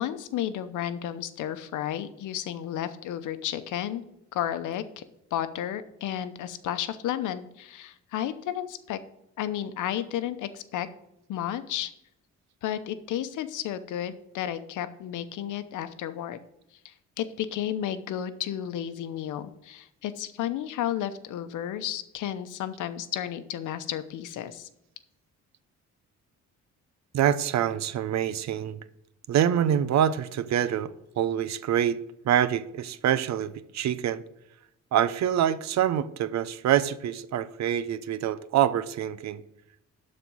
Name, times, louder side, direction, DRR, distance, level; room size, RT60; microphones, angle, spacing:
voice 1, 0.0-4.0 4.3-5.0 5.3-9.0 9.4-10.9 11.3-11.9 12.6-16.4 16.8-24.7, left 11 dB, 80° left, 0.8 m, -32 dB
voice 2, 27.1-28.8 29.3-34.2 34.9-39.4, right 10 dB, 65° right, 0.7 m, -26 dB
12.0 x 4.3 x 6.2 m
cardioid pair, 90°, 30 cm